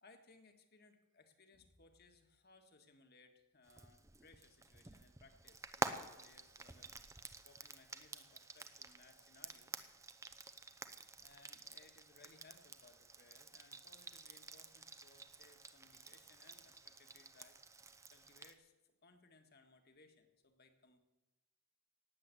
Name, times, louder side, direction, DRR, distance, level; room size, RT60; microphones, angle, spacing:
voice 1, 0.0-6.9 7.4-9.8 11.2-21.0, left 3 dB, 45° left, 6 dB, 1.7 m, -66 dB
Frying (food), 3.7-18.5, right 3 dB, 15° right, 0.7 m, -49 dB
18.5 x 7.7 x 8.4 m, 1.1 s
head